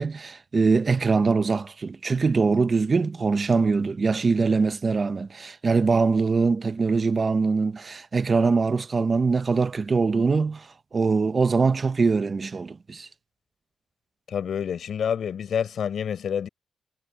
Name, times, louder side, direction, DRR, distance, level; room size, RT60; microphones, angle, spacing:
voice 1, 0.0-13.1, right 4 dB, 30° right, 0.7 m, -23 dB
voice 2, 14.3-16.5, left 8 dB, 60° left, 6.4 m, -28 dB
cardioid pair, 115°, 0 cm